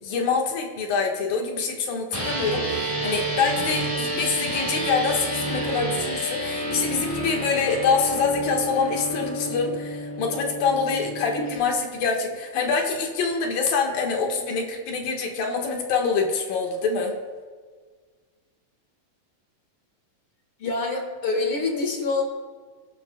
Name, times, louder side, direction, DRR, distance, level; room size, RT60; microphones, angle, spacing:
voice 1, 0.0-17.1, left 5 dB, 80° left, 1 dB, 3.2 m, -25 dB
sound 1, 2.1-11.6, right 1 dB, 5° right, 3.5 m, -29 dB
voice 2, 4.1-4.5 11.4-11.6 20.6-22.3, left 3 dB, 50° left, 2 dB, 1.8 m, -27 dB
23.5 x 11.0 x 2.3 m, 1.5 s
omnidirectional pair, 3.9 m